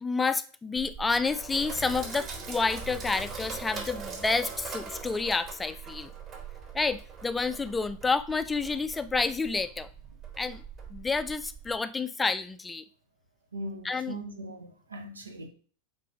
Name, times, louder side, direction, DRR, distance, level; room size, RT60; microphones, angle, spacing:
voice 1, 0.0-6.1 6.7-9.9 10.4-10.6 10.9-12.8 13.8-14.1, left 4 dB, 10° left, 0.4 m, -29 dB
Sink (filling or washing), 0.8-11.8, right 5 dB, 35° right, 3.3 m, -41 dB
voice 2, 13.5-15.5, right 1 dB, 75° right, 1.1 m, -40 dB
7.5 x 3.9 x 5.0 m
figure-of-eight pair, 90°, 0 cm